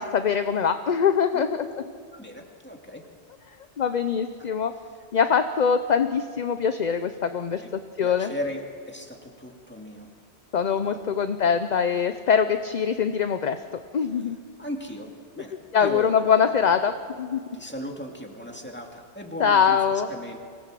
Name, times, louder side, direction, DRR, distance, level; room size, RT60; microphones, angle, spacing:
voice 1, 0.0-1.7 3.8-4.7 5.1-7.6 8.0-8.3 10.5-13.6 13.9-14.4 15.7-17.4 19.4-20.1, left 7 dB, 45° left, 9 dB, 0.7 m, -23 dB
voice 2, 1.3-1.8 2.1-3.0 4.4-4.5 7.6-10.1 10.8-11.2 14.2-14.3 14.6-15.5 15.8-16.2 17.5-20.4, equal, 10° left, 1 dB, 2.3 m, -37 dB
25.0 x 17.0 x 7.5 m, 2.1 s
omnidirectional pair, 1.1 m